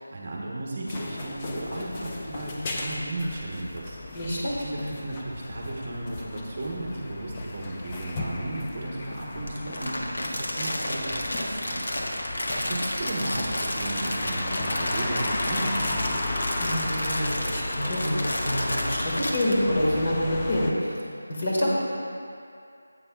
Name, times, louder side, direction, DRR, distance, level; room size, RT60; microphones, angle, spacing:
voice 1, 0.0-4.0 4.6-12.3 12.5-16.2, right 1 dB, 30° right, -3 dB, 1.0 m, -34 dB
sound 1, 0.9-20.7, left 2 dB, 15° left, 0.5 m, -34 dB
voice 2, 4.1-4.6 16.6-21.0 21.3-21.7, left 1 dB, 35° left, -5 dB, 1.7 m, -27 dB
Crumpling crinkling, 9.5-19.5, left 1 dB, 65° left, 1.3 m, -31 dB
14.0 x 8.3 x 2.3 m, 2.4 s
figure-of-eight pair, 175°, 0 cm